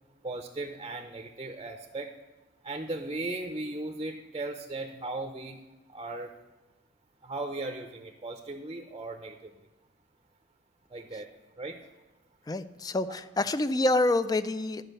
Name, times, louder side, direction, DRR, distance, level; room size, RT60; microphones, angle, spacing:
voice 1, 0.2-2.1 2.6-5.6 5.9-6.3 7.2-9.5 10.9-11.3 11.6-11.8, right 2 dB, 25° right, 4 dB, 0.6 m, -37 dB
voice 2, 12.5-14.8, left 2 dB, 20° left, 14 dB, 0.3 m, -27 dB
11.0 x 5.3 x 6.6 m, 1.1 s
head